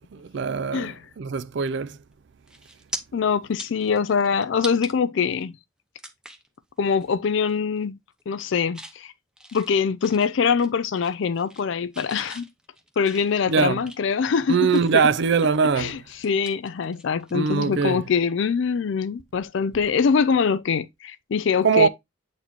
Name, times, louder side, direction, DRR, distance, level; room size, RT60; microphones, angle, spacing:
voice 1, 0.1-2.0 13.5-13.8 14.5-16.0 17.3-18.0 21.6-21.9, right 6 dB, 55° right, 0.4 m, -22 dB
sound 1, 2.5-3.0 3.4-4.9 5.4-5.5 6.0-6.5 6.9-7.1 7.4-7.8 8.2-9.0 9.4-10.7 11.0-11.7 11.9-15.1 15.5-17.4 17.6-17.8 19.7-19.9, right 1 dB, 5° right, 0.6 m, -41 dB
voice 2, 3.1-5.6 6.8-8.0 8.3-9.1 9.5-12.5 13.0-15.0 15.8-21.9, left 6 dB, 60° left, 0.4 m, -23 dB
8.2 x 4.1 x 3.0 m
head